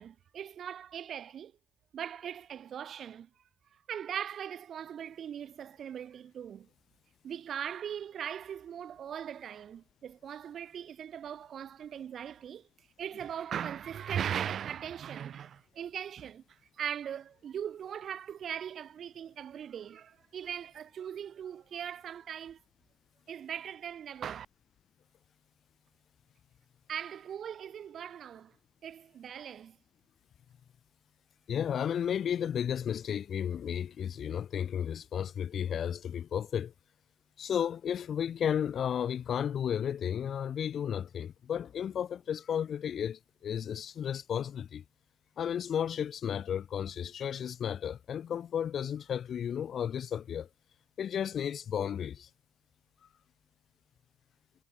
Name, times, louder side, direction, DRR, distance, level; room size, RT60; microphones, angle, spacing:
voice 1, 0.0-1.5 1.9-3.3 3.9-6.7 7.2-12.7 13.0-22.6 23.3-24.5 26.9-28.5 28.8-29.8, right 9 dB, 50° right, 1.9 m, -39 dB
voice 2, 31.5-36.7 37.4-44.8 45.4-50.5 51.0-52.3, left 8 dB, 50° left, 0.7 m, -33 dB
hypercardioid pair, 55°, 0 cm